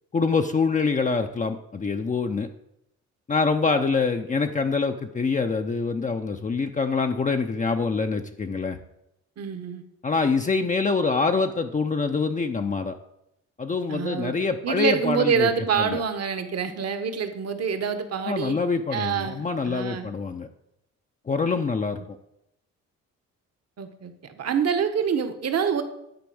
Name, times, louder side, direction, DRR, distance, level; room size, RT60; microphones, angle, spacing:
voice 1, 0.1-2.5 3.3-8.8 10.0-12.9 13.6-16.0 18.2-20.5 21.3-22.0, left 4 dB, 25° left, 5 dB, 0.6 m, -25 dB
voice 2, 9.4-9.8 13.9-14.3 14.6-18.6 18.9-20.1 23.8-25.8, right 7 dB, 55° right, 8 dB, 1.3 m, -26 dB
10.5 x 4.5 x 7.8 m, 0.83 s
cardioid pair, 90°, 30 cm